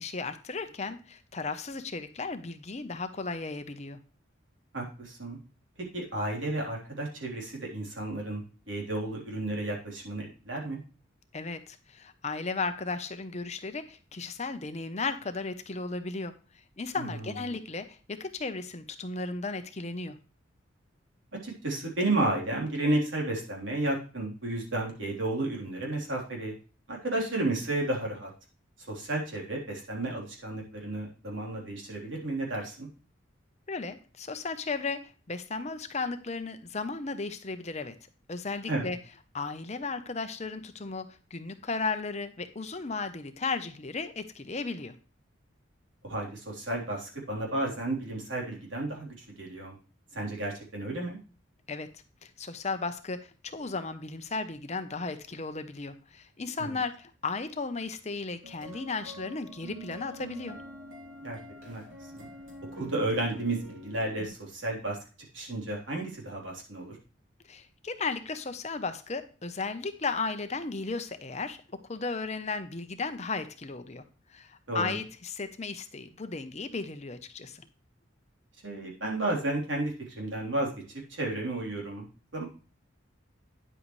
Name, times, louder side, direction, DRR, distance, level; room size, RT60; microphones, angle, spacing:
voice 1, 0.0-4.0 11.3-16.3 16.8-20.2 33.7-35.0 35.3-38.0 38.3-39.0 39.3-41.0 41.3-44.9 51.7-51.9 52.2-60.6 67.5-71.6 71.9-74.0 74.3-77.6, left 4 dB, 35° left, 10 dB, 0.7 m, -35 dB
voice 2, 4.7-5.4 5.9-10.8 16.9-17.3 21.4-26.5 26.9-28.3 28.9-32.9 38.7-38.9 46.0-49.8 50.1-51.2 56.6-56.8 61.2-61.4 61.6-61.8 62.1-62.3 62.7-65.0 65.3-67.0 74.7-75.0 78.6-82.0 82.3-82.5, right 2 dB, 75° right, -1 dB, 3.6 m, -32 dB
sound 1, 58.4-64.3, equal, 90° right, 3.1 m, -46 dB
9.8 x 7.8 x 3.2 m, 0.36 s
head